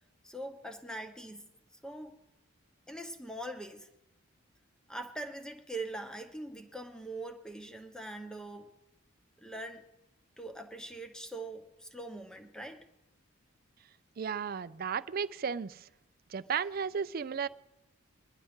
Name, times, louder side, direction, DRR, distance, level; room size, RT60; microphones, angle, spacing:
voice 1, 0.2-2.2 2.9-3.9 4.9-8.7 9.4-9.8 10.4-12.9, right 1 dB, 5° left, 6 dB, 0.9 m, -42 dB
voice 2, 14.2-15.9 16.3-17.5, right 6 dB, 45° right, 14 dB, 0.4 m, -34 dB
22.0 x 11.0 x 3.6 m, 0.92 s
head